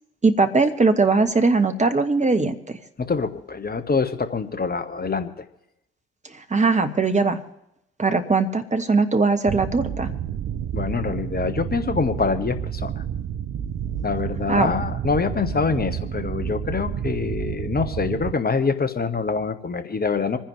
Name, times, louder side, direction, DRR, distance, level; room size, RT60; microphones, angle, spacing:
voice 1, 0.2-2.8 6.3-7.4 8.0-10.1 14.5-14.7, right 3 dB, 25° right, 7 dB, 1.5 m, -20 dB
voice 2, 3.0-5.4 10.7-13.0 14.0-20.4, left 5 dB, 30° left, 8 dB, 1.5 m, -25 dB
sound 1, 9.5-18.3, right 9 dB, 50° right, 0.7 m, -30 dB
27.5 x 10.5 x 3.3 m, 0.87 s
figure-of-eight pair, 40°, 30 cm